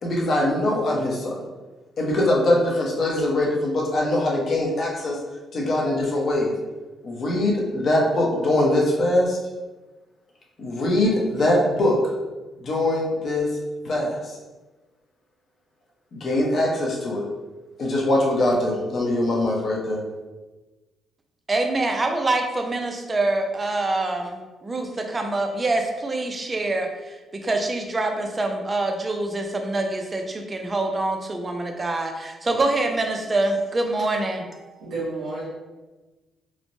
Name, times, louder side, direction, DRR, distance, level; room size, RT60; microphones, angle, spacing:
voice 1, 0.0-1.4 2.0-5.2 5.5-6.5 7.0-9.4 10.6-11.9 12.6-13.5 13.8-14.4 16.1-17.2 17.8-20.0, left 1 dB, 55° left, -2 dB, 0.7 m, -22 dB
voice 2, 21.5-34.8, right 2 dB, 25° right, 4 dB, 0.4 m, -25 dB
voice 3, 34.8-35.4, right 2 dB, 75° right, -9 dB, 0.9 m, -30 dB
3.0 x 2.1 x 2.6 m, 1.2 s
cardioid pair, 90°, 0 cm